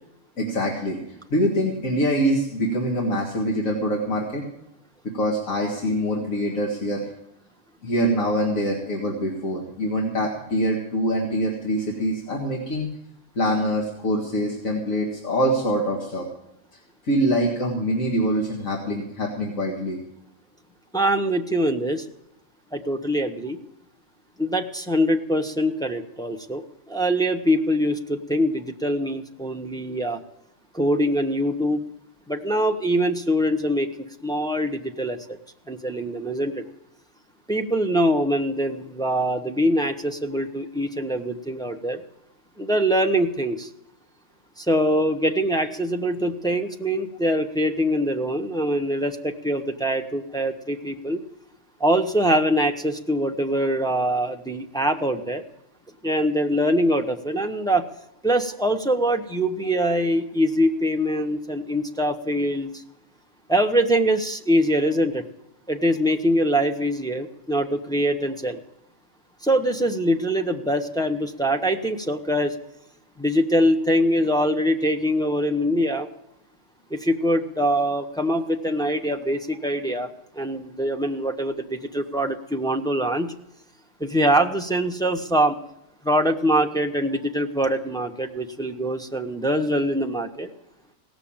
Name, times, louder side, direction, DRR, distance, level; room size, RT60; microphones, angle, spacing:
voice 1, 0.4-1.0 1.3-4.4 5.1-7.0 7.8-12.9 13.4-16.2 17.0-20.0, equal, 85° left, -1 dB, 2.4 m, -24 dB
voice 2, 20.9-22.0 22.7-23.6 24.4-30.2 30.7-31.8 32.3-33.9 34.2-35.4 35.7-36.6 37.5-42.0 42.6-43.7 44.6-51.2 51.8-55.4 56.0-57.9 58.2-62.8 63.5-65.2 65.7-68.6 69.4-72.5 73.2-76.1 76.9-83.3 84.0-85.6 86.0-90.5, equal, 5° left, 3 dB, 0.7 m, -23 dB
17.0 x 7.0 x 8.7 m, 0.83 s
omnidirectional pair, 1.4 m